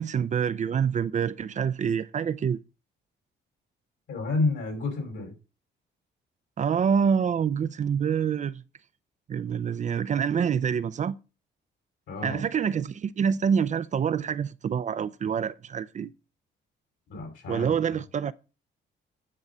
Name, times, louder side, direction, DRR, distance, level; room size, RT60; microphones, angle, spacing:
voice 1, 0.0-2.6 6.6-8.6 9.3-11.2 12.2-16.1 17.5-18.3, right 7 dB, 40° right, 0.5 m, -26 dB
voice 2, 4.1-5.3 12.1-12.4 17.1-18.0, left 3 dB, 75° left, 4.9 m, -30 dB
9.8 x 3.9 x 6.6 m
cardioid pair, 105°, 20 cm